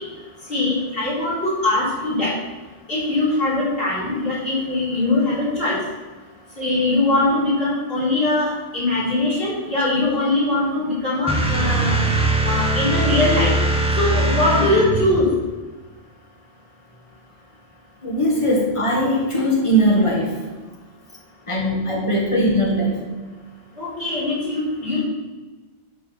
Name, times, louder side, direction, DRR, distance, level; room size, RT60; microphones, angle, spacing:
voice 1, 0.5-2.3 2.9-5.8 6.6-12.0 12.4-13.5 14.0-15.3 23.8-25.0, left 2 dB, 60° left, -9 dB, 3.9 m, -21 dB
sound 1, 11.3-15.2, right 2 dB, 5° right, 1.2 m, -21 dB
voice 2, 18.0-20.4 21.5-23.0, equal, 30° left, -1 dB, 2.0 m, -20 dB
11.0 x 5.1 x 5.7 m, 1.3 s
omnidirectional pair, 1.1 m